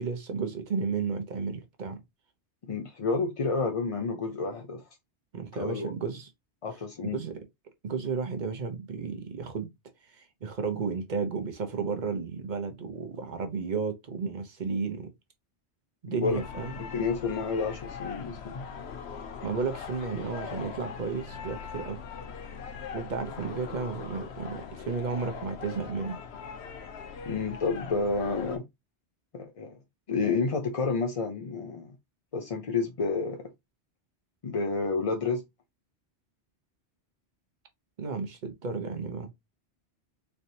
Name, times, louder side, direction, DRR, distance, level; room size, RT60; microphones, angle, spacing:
voice 1, 0.0-2.0 5.3-6.3 7.0-7.4 7.8-9.7 10.1-15.1 16.0-16.8 19.4-22.0 22.9-26.2 38.0-39.3, right 5 dB, 45° right, 0.9 m, -33 dB
voice 2, 2.7-4.8 5.5-5.9 6.6-7.2 16.1-16.4 16.9-18.6 27.2-28.6 29.3-29.8 30.1-31.9 32.3-33.4 34.4-35.4, left 4 dB, 40° left, 0.5 m, -30 dB
sound 1, 16.2-28.6, left 6 dB, 70° left, 1.0 m, -41 dB
4.0 x 3.3 x 2.7 m
omnidirectional pair, 1.1 m